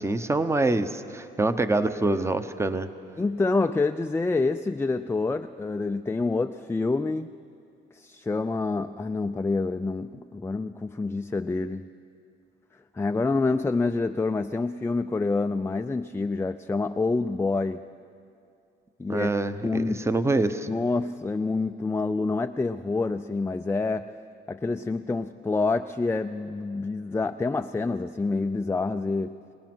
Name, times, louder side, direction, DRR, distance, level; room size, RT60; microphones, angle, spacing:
voice 1, 0.0-2.9 19.1-20.7, right 2 dB, 15° right, 11 dB, 0.9 m, -25 dB
voice 2, 3.2-7.3 7.9-11.9 12.9-17.8 19.0-19.3 19.6-20.1 20.7-24.1 24.5-29.4, left 3 dB, 10° left, 7 dB, 0.4 m, -27 dB
25.0 x 19.0 x 6.1 m, 2.4 s
cardioid pair, 90°, 20 cm